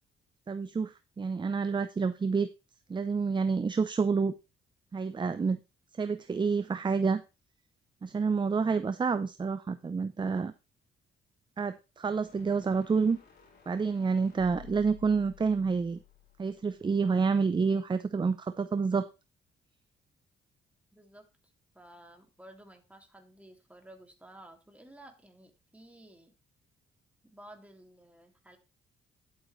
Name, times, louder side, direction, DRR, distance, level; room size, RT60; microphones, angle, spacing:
voice 1, 0.5-2.5 2.9-4.3 4.9-5.6 6.0-7.2 8.0-10.5 11.6-13.2 13.7-16.0 16.4-19.1, right 5 dB, 25° right, 12 dB, 0.6 m, -28 dB
sound 1, 12.1-17.3, left 10 dB, 55° left, 3.8 m, -55 dB
voice 2, 20.9-21.3 21.7-26.3 27.2-28.6, right 1 dB, 5° right, 3 dB, 2.5 m, -53 dB
11.0 x 8.1 x 3.2 m, 0.27 s
cardioid pair, 90°, 20 cm